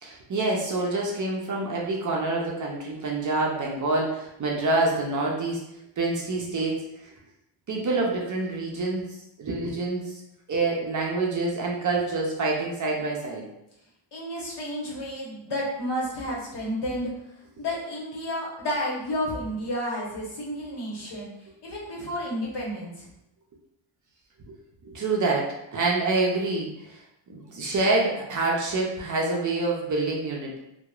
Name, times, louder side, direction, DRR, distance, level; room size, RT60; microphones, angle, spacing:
voice 1, 0.0-5.6 6.0-6.9 7.7-9.0 9.4-10.2 10.5-13.4 24.5-24.6 24.8-27.0 27.3-30.6, right 2 dB, 40° right, -2 dB, 0.5 m, -26 dB
voice 2, 14.1-17.1 17.6-23.1, equal, 55° left, -4 dB, 1.0 m, -31 dB
2.8 x 2.0 x 2.3 m, 0.84 s
cardioid pair, 105°, 48 cm